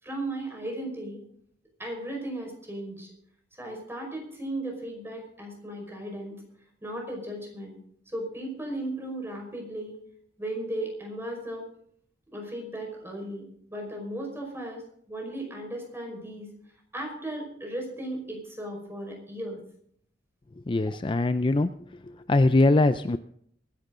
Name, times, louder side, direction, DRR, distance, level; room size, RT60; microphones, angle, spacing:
voice 1, 0.0-1.2 1.8-3.1 3.6-6.3 6.8-7.8 8.1-10.0 10.4-11.7 12.3-16.5 16.9-19.6, right 1 dB, 15° right, 1 dB, 5.2 m, -36 dB
voice 2, 20.7-21.7 22.1-23.2, left 2 dB, 30° left, 12 dB, 0.4 m, -22 dB
23.0 x 11.0 x 3.9 m, 0.66 s
head